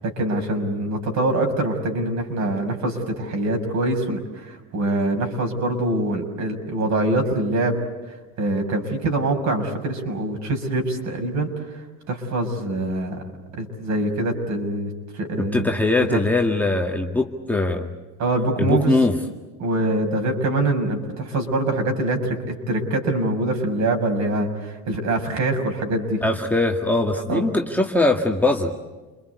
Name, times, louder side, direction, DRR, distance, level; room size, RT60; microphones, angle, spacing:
voice 1, 0.2-7.8 8.4-11.5 12.1-13.2 13.5-15.7 16.0-16.2 18.2-18.9 19.6-26.2 27.1-27.4, right 2 dB, 50° right, 4 dB, 6.4 m, -24 dB
voice 2, 15.5-17.9 18.6-19.2 26.2-28.8, left 2 dB, 5° left, 1 dB, 1.9 m, -21 dB
29.5 x 22.0 x 8.3 m, 1.2 s
supercardioid pair, 105°, 36 cm